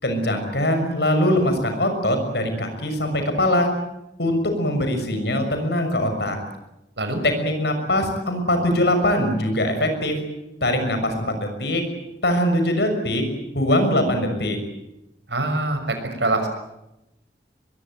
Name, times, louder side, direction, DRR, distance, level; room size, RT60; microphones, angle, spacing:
voice 1, 0.0-3.7 4.2-6.4 7.2-10.2 10.6-11.8 12.2-13.2 13.5-14.6, left 1 dB, 70° left, 6 dB, 6.4 m, -22 dB
voice 2, 15.3-16.5, right 2 dB, 75° right, 6 dB, 6.3 m, -24 dB
24.0 x 22.5 x 9.3 m, 0.89 s
head